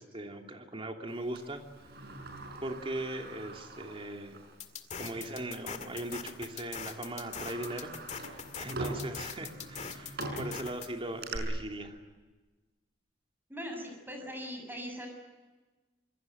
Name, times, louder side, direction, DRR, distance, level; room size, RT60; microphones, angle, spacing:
voice 1, 0.0-1.6 2.6-4.4 5.0-7.9 8.2-12.0, right 1 dB, 30° right, 3 dB, 3.0 m, -39 dB
Sliding door, 1.4-4.6 4.9-5.0 6.0-6.2 6.6-11.4, right 2 dB, 60° right, 5.6 m, -43 dB
sound 1, 4.6-10.9, left 6 dB, 40° left, 2.1 m, -42 dB
voice 2, 13.5-15.1, equal, 10° right, 4 dB, 6.9 m, -40 dB
26.5 x 22.5 x 7.9 m, 1.2 s
head